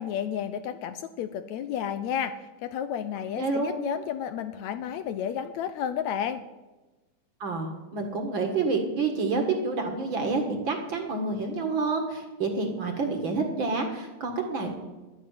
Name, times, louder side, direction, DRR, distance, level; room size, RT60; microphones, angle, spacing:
voice 1, 0.0-6.4, left 9 dB, 75° left, 11 dB, 1.8 m, -32 dB
voice 2, 3.4-3.7 7.4-14.7, right 3 dB, 45° right, 4 dB, 2.1 m, -28 dB
11.5 x 9.5 x 9.3 m, 1.2 s
omnidirectional pair, 3.5 m